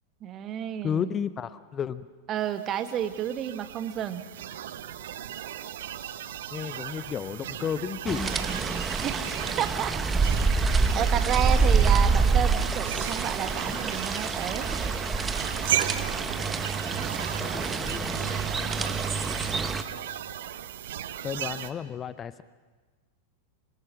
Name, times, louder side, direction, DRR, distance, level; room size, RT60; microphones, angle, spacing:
voice 1, 0.2-1.2 2.3-4.2 9.0-10.0 10.9-14.7, right 10 dB, 30° right, 9 dB, 1.5 m, -31 dB
voice 2, 0.8-2.1 6.5-8.5 16.6-16.7 17.4-18.3 21.2-22.4, left 8 dB, 25° left, 15 dB, 0.6 m, -33 dB
sound 1, 2.5-21.7, right 11 dB, 60° right, 1.0 m, -36 dB
sound 2, 8.1-19.8, right 4 dB, 15° right, 1.2 m, -26 dB
25.5 x 24.5 x 6.0 m, 1.3 s
figure-of-eight pair, 90°, 0 cm